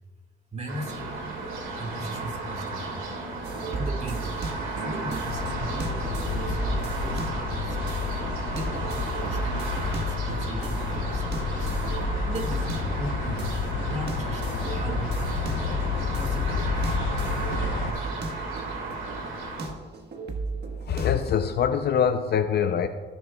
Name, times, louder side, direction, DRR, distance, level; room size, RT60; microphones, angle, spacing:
voice 1, 0.5-1.1 1.8-3.0 3.7-4.3 4.8-7.9 8.5-15.8 16.2-17.0, right 1 dB, 35° right, 3 dB, 1.9 m, -37 dB
sound 1, 0.7-19.7, right 3 dB, 80° right, 2.2 m, -35 dB
sound 2, 3.4-21.6, right 3 dB, 55° right, 1.3 m, -35 dB
sound 3, 5.3-17.9, left 5 dB, 75° left, 1.0 m, -30 dB
voice 2, 20.9-22.9, left 8 dB, 55° left, 7 dB, 0.5 m, -24 dB
16.5 x 7.0 x 2.3 m, 1.5 s
cardioid pair, 90°, 20 cm